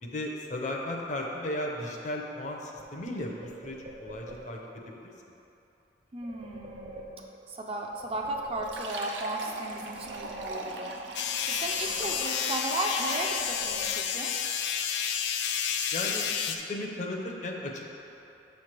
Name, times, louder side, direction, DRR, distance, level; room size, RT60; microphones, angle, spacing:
voice 1, 0.0-4.6 15.9-17.9, left 1 dB, 45° left, 0 dB, 0.6 m, -35 dB
sound 1, 2.8-4.8 6.2-7.6 7.9-9.3 9.6-11.0 11.4-12.7 13.1-14.4, right 1 dB, 70° right, 1.3 m, -47 dB
voice 2, 6.1-7.1 7.5-10.9 11.4-14.3, right 1 dB, 35° right, 0 dB, 0.5 m, -35 dB
Fill (with liquid), 8.6-13.7, right 2 dB, 90° right, 0.6 m, -41 dB
sound 2, 11.1-16.6, left 8 dB, 75° left, 0.4 m, -30 dB
7.0 x 3.2 x 5.9 m, 3.0 s
head